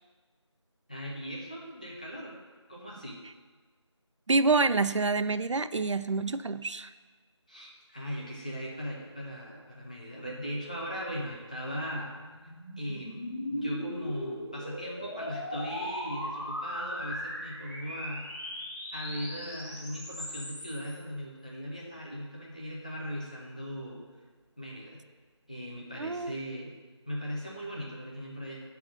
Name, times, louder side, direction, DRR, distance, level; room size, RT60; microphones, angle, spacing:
voice 1, 0.9-2.3 2.7-3.2 7.5-12.2 12.8-18.3 18.9-24.0 24.6-25.0 25.5-26.8 27.0-28.6, equal, 15° left, -5 dB, 0.7 m, -38 dB
voice 2, 4.3-6.9 26.0-26.4, right 3 dB, 80° right, 13 dB, 0.4 m, -27 dB
sound 1, 11.4-21.0, equal, 30° left, 1.5 m, -38 dB
9.7 x 3.5 x 5.9 m, 1.4 s
figure-of-eight pair, 170°, 15 cm